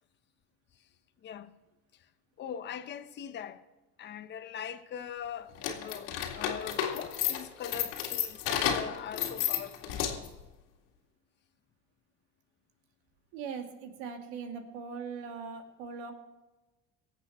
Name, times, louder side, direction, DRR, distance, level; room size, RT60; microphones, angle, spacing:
voice 1, 1.2-1.5 2.4-3.6 4.0-10.0, left 8 dB, 35° left, 0.9 m, -41 dB
sound 1, 5.5-10.4, left 9 dB, 80° left, 2.3 m, -32 dB
voice 2, 13.3-16.1, right 5 dB, 85° right, 2.4 m, -40 dB
24.5 x 8.3 x 4.3 m
cardioid pair, 135°, 31 cm